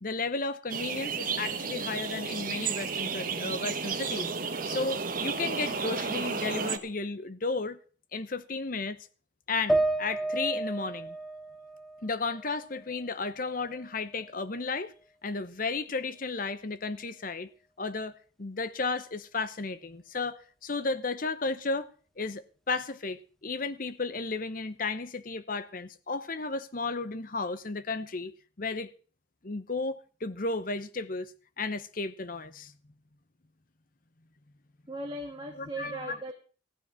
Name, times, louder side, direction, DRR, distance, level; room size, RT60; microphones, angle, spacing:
voice 1, 0.0-4.3 4.6-7.8 8.1-9.0 9.5-11.2 12.0-14.9 15.2-17.5 17.8-21.9 22.2-28.9 29.4-31.3 31.6-32.7 35.6-36.2, left 3 dB, 45° left, 0.8 m, -33 dB
sound 1, 0.7-6.8, right 5 dB, 45° right, 1.0 m, -32 dB
sound 2, 9.7-13.1 13.5-14.5, right 2 dB, ahead, 0.6 m, -32 dB
voice 2, 34.9-36.3, right 2 dB, 25° right, 1.5 m, -38 dB
15.0 x 9.8 x 5.7 m
head